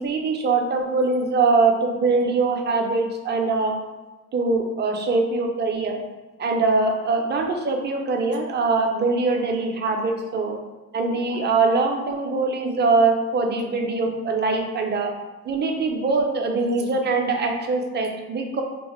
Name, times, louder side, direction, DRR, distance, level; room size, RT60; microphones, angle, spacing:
voice 1, 0.0-3.8 4.3-6.0 6.4-10.5 10.9-15.1 15.4-18.6, right 3 dB, 35° right, 3 dB, 0.5 m, -22 dB
2.8 x 2.0 x 3.0 m, 1.2 s
cardioid pair, 90°, 30 cm